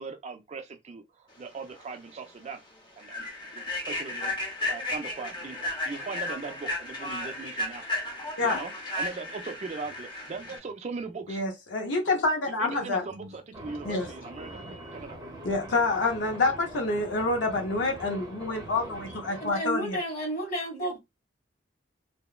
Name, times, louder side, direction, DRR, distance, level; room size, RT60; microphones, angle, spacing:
voice 1, 0.0-2.6 3.0-3.3 3.5-7.8 8.4-11.4 12.6-15.2, right 4 dB, 35° right, 0.4 m, -39 dB
Human voice / Train, 1.7-1.9 2.3-2.5 3.0-10.6, left 1 dB, 25° left, 0.7 m, -34 dB
voice 2, 11.3-13.0 13.8-14.1 15.4-20.0, left 3 dB, 75° left, 0.6 m, -27 dB
sound 1, 13.5-19.5, right 1 dB, 20° right, 0.8 m, -43 dB
voice 3, 19.4-21.0, right 1 dB, 45° left, 1.7 m, -32 dB
2.8 x 2.0 x 2.3 m
head